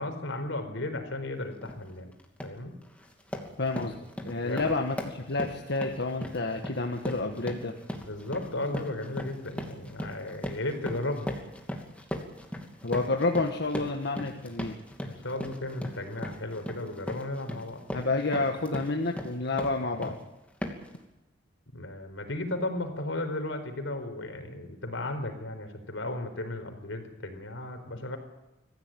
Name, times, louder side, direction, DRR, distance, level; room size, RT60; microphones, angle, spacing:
voice 1, 0.0-2.1 2.4-2.7 4.4-4.7 8.1-11.3 15.0-17.8 21.7-28.2, left 2 dB, 80° left, 7 dB, 4.4 m, -35 dB
sound 1, 1.6-1.8 2.2-2.6 3.0-20.2 20.6-21.0, equal, 5° left, 2.7 m, -38 dB
voice 2, 3.6-3.9 4.2-5.0 5.3-7.7 12.8-14.7 17.9-20.2, left 3 dB, 60° left, 3 dB, 1.5 m, -29 dB
24.0 x 15.5 x 9.1 m, 0.96 s
head